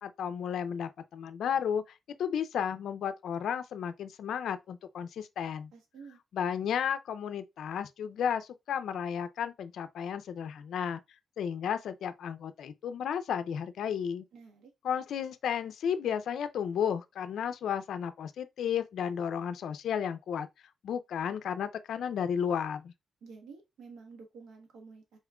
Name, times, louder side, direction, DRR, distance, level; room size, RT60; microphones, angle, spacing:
voice 1, 0.0-1.8 2.2-5.7 6.3-11.0 11.4-14.2 14.8-20.5 20.8-22.9, left 8 dB, 80° left, 0.4 m, -33 dB
voice 2, 5.7-6.2 14.3-14.7 23.2-25.2, right 4 dB, 85° right, 1.2 m, -50 dB
4.2 x 3.6 x 2.3 m
cardioid pair, 75°, 0 cm